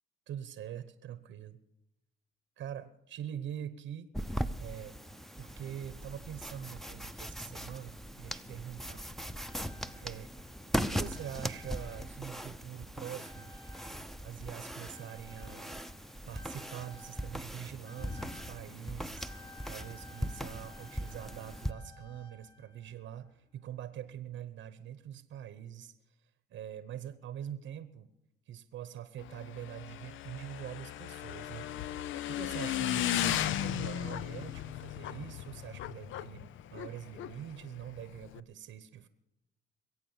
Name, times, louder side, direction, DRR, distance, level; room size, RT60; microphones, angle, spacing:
voice 1, 0.3-1.6 2.6-4.1 4.6-5.0 5.4-9.0 9.9-13.5 14.2-15.8 16.3-19.3 19.7-28.1 28.4-32.0 32.3-39.1, right 10 dB, 75° right, 12 dB, 1.0 m, -44 dB
sound 1, 4.1-21.7, equal, ahead, 0.7 m, -40 dB
sound 2, 9.4-12.7 13.0-23.1 24.1-24.2, left 2 dB, 25° left, 3.4 m, -54 dB
Motorcycle / Engine, 29.2-38.4, left 12 dB, 80° left, 0.5 m, -36 dB
22.0 x 8.6 x 7.2 m, 0.87 s
cardioid pair, 90°, 20 cm